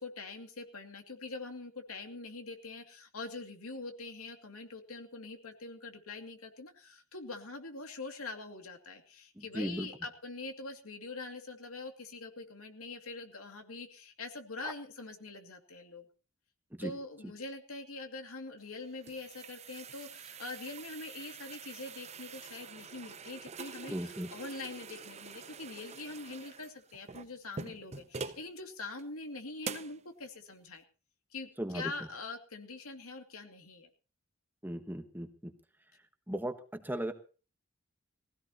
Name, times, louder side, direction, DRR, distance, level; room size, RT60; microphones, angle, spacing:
voice 1, 0.0-16.1 16.8-30.8 31.3-33.9, left 3 dB, 85° left, 4 dB, 2.5 m, -44 dB
voice 2, 9.4-9.9 16.7-16.9 23.9-24.3 31.6-31.9 34.6-35.5 36.3-37.1, right 1 dB, 10° right, 7 dB, 1.2 m, -37 dB
sound 1, 18.6-28.5 29.0-29.1 29.6-30.0, right 5 dB, 30° right, 0.7 m, -46 dB
20.0 x 16.0 x 2.9 m, 0.36 s
head